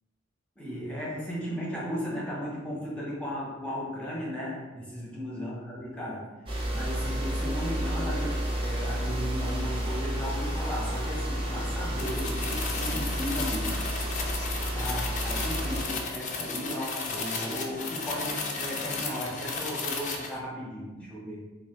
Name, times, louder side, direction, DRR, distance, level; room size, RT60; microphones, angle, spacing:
voice 1, 0.6-6.3 6.7-14.2 14.7-21.4, equal, 5° left, -6 dB, 0.9 m, -35 dB
sound 1, 6.5-15.8, right 1 dB, 25° right, 0.6 m, -31 dB
sound 2, 12.0-20.4, left 4 dB, 40° left, 0.5 m, -34 dB
3.6 x 2.4 x 3.6 m, 1.2 s
head